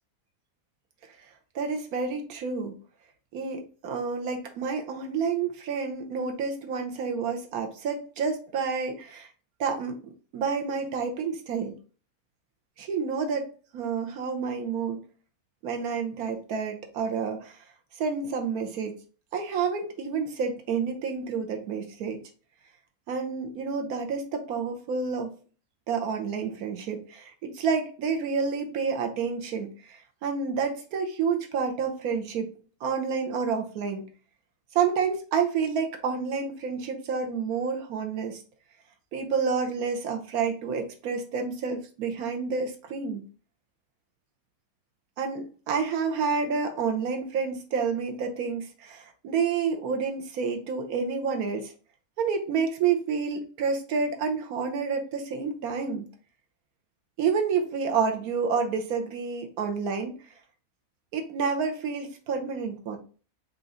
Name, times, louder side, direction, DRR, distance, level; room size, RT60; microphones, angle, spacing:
voice 1, 1.5-2.7 3.3-9.3 9.6-11.7 12.8-15.0 15.6-17.6 18.0-18.9 19.3-22.2 23.1-25.3 25.9-32.5 32.8-34.0 34.7-38.4 39.1-43.2 45.2-51.7 52.2-56.0 57.2-60.2 61.1-63.0, right 5 dB, 90° right, 3 dB, 1.3 m, -29 dB
4.5 x 2.6 x 3.7 m, 0.38 s
omnidirectional pair, 1.5 m